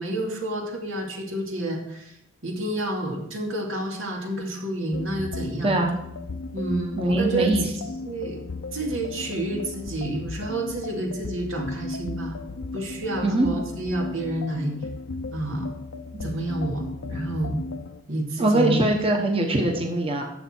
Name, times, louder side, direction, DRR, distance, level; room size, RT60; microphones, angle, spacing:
voice 1, 0.0-2.2 2.4-5.8 6.5-7.5 8.0-8.4 8.7-12.4 12.7-14.7 15.3-15.7 16.2-17.6 18.1-18.9, right 1 dB, 85° right, 0 dB, 2.4 m, -29 dB
sound 1, 4.9-18.0, left 3 dB, 70° left, 0.6 m, -35 dB
voice 2, 5.6-5.9 7.0-7.6 13.2-13.5 16.1-16.3 18.4-20.2, right 1 dB, 30° right, 2 dB, 1.1 m, -22 dB
12.0 x 7.2 x 4.5 m, 0.79 s
head